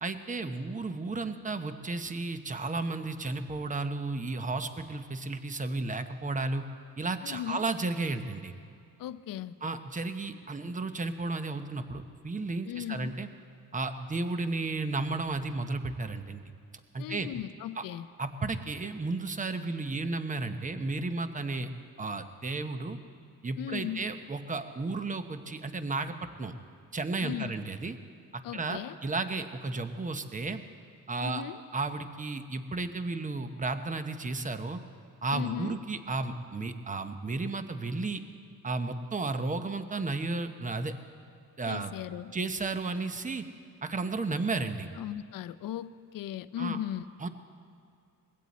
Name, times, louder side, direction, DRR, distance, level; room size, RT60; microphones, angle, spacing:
voice 1, 0.0-6.6 7.0-8.5 9.6-13.3 13.7-16.4 16.9-17.3 17.8-17.9 18.2-21.7 22.0-23.0 23.4-26.5 26.9-28.0 28.3-30.6 31.1-31.4 31.7-34.8 35.2-38.2 38.6-40.9 41.6-41.9 42.3-43.5 43.8-44.9 46.6-46.8 47.2-47.3, right 3 dB, 20° right, 9 dB, 0.9 m, -33 dB
voice 2, 7.2-7.6 9.0-9.5 12.7-13.2 17.0-18.1 23.6-24.0 27.2-27.5 28.4-29.0 31.2-31.6 35.3-35.8 41.7-42.4 45.0-47.0, left 11 dB, 65° left, 15 dB, 0.6 m, -37 dB
21.0 x 16.5 x 4.2 m, 2.4 s
cardioid pair, 120°, 36 cm